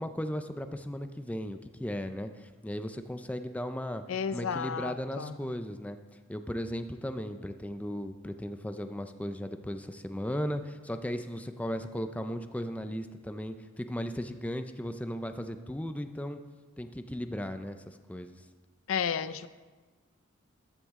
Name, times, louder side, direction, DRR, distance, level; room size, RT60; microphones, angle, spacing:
voice 1, 0.0-4.0 4.3-6.0 6.3-16.4 16.8-18.3, equal, 5° left, 0.5 m, -36 dB
voice 2, 4.1-5.4 18.9-19.5, left 7 dB, 70° left, 0.5 m, -32 dB
14.5 x 10.0 x 3.7 m
head